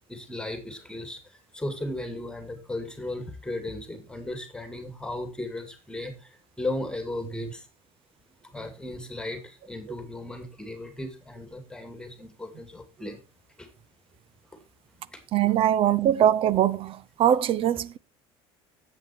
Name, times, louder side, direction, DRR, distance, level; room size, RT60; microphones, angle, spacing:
voice 1, 0.1-7.7 8.5-13.2 13.6-13.7 15.1-15.2, left 1 dB, 5° left, 2.1 m, -36 dB
voice 2, 15.3-16.9 17.2-18.0, right 10 dB, 50° right, 0.6 m, -22 dB
11.0 x 8.0 x 4.4 m
supercardioid pair, 100°, 12 cm